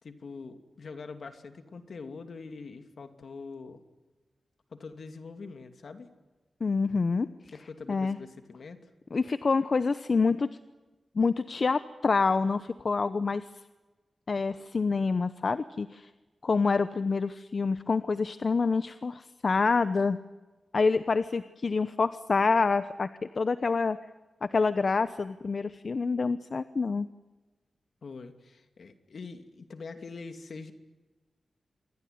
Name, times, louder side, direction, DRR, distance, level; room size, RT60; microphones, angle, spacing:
voice 1, 0.0-3.8 4.7-6.1 7.5-8.9 28.0-30.7, left 4 dB, 65° left, 7 dB, 2.7 m, -44 dB
voice 2, 6.6-7.3 7.9-8.2 9.1-10.5 11.2-13.4 14.3-16.1 16.4-20.2 20.7-23.1 23.3-24.0 24.4-27.1, left 4 dB, 50° left, 13 dB, 0.8 m, -27 dB
27.0 x 22.5 x 9.5 m, 1.2 s
wide cardioid pair, 115°, 0 cm